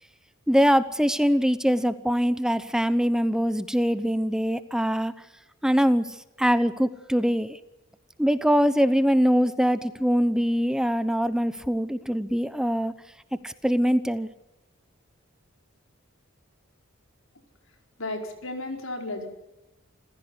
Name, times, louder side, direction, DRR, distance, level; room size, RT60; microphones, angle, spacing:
voice 1, 0.5-5.1 5.6-7.6 8.2-12.9 13.4-14.3, equal, 5° right, 13 dB, 0.8 m, -23 dB
voice 2, 18.0-19.3, left 2 dB, 85° left, 4 dB, 4.9 m, -33 dB
27.5 x 16.0 x 9.7 m, 0.99 s
head